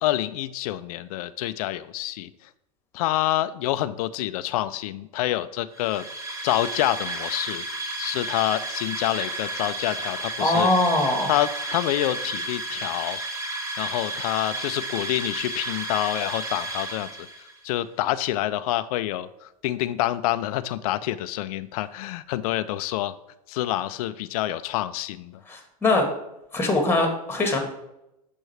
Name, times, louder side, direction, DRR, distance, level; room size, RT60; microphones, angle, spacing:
voice 1, 0.0-2.5 2.9-6.1 6.4-7.6 8.0-10.7 11.3-13.2 13.8-23.2 23.5-25.4, left 14 dB, 65° left, 14 dB, 0.4 m, -27 dB
sound 1, 5.7-17.6, right 2 dB, 15° right, 1.2 m, -32 dB
voice 2, 10.4-11.3 25.5-26.1 26.5-27.6, left 2 dB, 10° left, 4 dB, 1.4 m, -22 dB
6.4 x 5.3 x 3.3 m, 0.87 s
hypercardioid pair, 100°, 20 cm